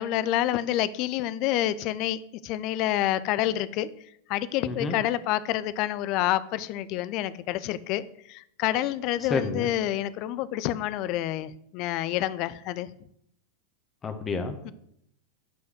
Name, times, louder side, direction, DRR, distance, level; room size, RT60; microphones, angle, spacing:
voice 1, 0.0-3.9 4.3-8.0 8.3-12.9 14.6-14.7, left 13 dB, 40° left, 17 dB, 0.6 m, -28 dB
voice 2, 4.6-5.0 9.2-9.7 14.0-14.7, left 4 dB, 20° left, 8 dB, 1.5 m, -30 dB
10.0 x 5.6 x 7.8 m, 0.72 s
figure-of-eight pair, 90°, 0 cm